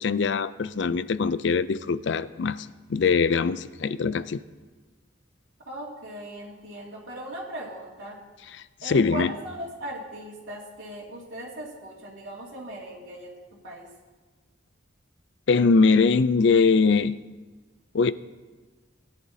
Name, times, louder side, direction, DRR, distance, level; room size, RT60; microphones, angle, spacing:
voice 1, 0.0-4.4 8.8-9.3 15.5-17.2 17.9-18.1, left 4 dB, 65° left, 15 dB, 0.4 m, -22 dB
voice 2, 5.7-8.2 8.8-13.3 13.6-13.9, right 1 dB, 80° right, -7 dB, 2.2 m, -38 dB
21.5 x 10.5 x 2.8 m, 1.3 s
head